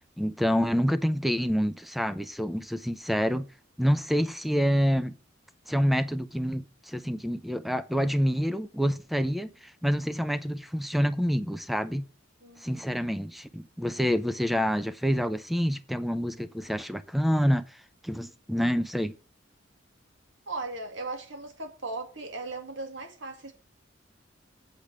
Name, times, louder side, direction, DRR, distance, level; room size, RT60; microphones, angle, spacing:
voice 1, 0.2-3.5 3.8-5.2 5.7-12.0 12.6-17.8 18.0-19.1, equal, ahead, 0.6 m, -27 dB
voice 2, 12.4-12.9 20.5-23.5, right 3 dB, 80° right, 2.2 m, -37 dB
8.6 x 5.1 x 6.1 m
head